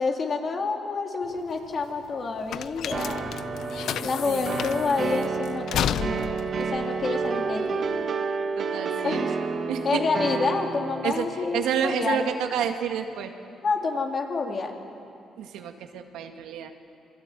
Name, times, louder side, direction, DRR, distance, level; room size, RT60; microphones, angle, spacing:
voice 1, 0.0-3.3 4.0-6.3 6.5-7.9 9.0-9.3 9.8-12.3 13.6-14.8, left 4 dB, 45° left, 2 dB, 3.7 m, -28 dB
sound 1, 1.2-8.0, left 10 dB, 75° left, 0.7 m, -33 dB
sound 2, 2.9-11.2, right 5 dB, 55° right, 1.9 m, -30 dB
voice 2, 8.6-9.2 9.7-10.0 11.0-13.3 15.4-16.7, right 8 dB, 90° right, 5 dB, 2.1 m, -29 dB
27.5 x 23.5 x 9.2 m, 2.6 s
cardioid pair, 90°, 0 cm